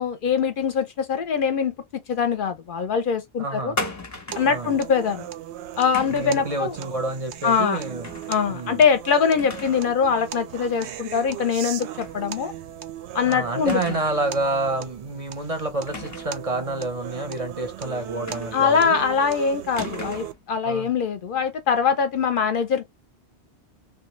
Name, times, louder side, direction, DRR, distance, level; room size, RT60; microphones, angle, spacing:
voice 1, 0.0-3.7 4.3-5.3 5.8-6.7 7.4-7.8 8.3-12.5 13.1-14.0 18.5-22.8, left 6 dB, 60° left, 0.6 m, -23 dB
voice 2, 3.4-3.8 4.4-4.7 6.1-8.1 8.5-8.8 13.3-19.0 20.6-20.9, right 2 dB, 40° right, 0.6 m, -28 dB
sound 1, 3.8-4.6 5.9-6.4 8.0-8.4 8.7-8.8 9.4-9.9 10.3-10.4 12.0-12.2 12.5-12.6 13.7-14.3 15.9-16.4 18.3-18.8 19.8-20.4, left 3 dB, 20° left, 0.5 m, -35 dB
sound 2, 4.3-20.3, right 10 dB, 85° right, 0.9 m, -37 dB
3.3 x 2.2 x 3.0 m
omnidirectional pair, 1.1 m